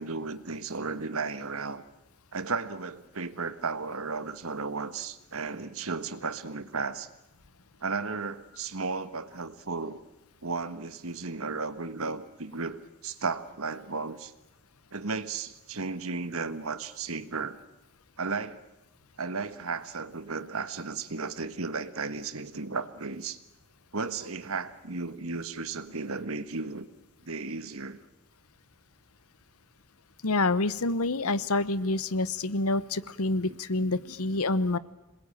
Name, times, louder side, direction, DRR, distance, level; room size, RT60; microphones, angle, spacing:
voice 1, 0.0-1.8 2.3-7.1 7.8-10.0 10.4-14.3 14.9-17.6 18.2-18.6 19.2-23.4 23.9-26.9 27.2-28.0 34.0-34.1, right 4 dB, 70° right, 11 dB, 1.5 m, -34 dB
voice 2, 30.2-34.8, left 2 dB, 80° left, 16 dB, 1.0 m, -27 dB
27.0 x 21.0 x 9.0 m, 0.94 s
head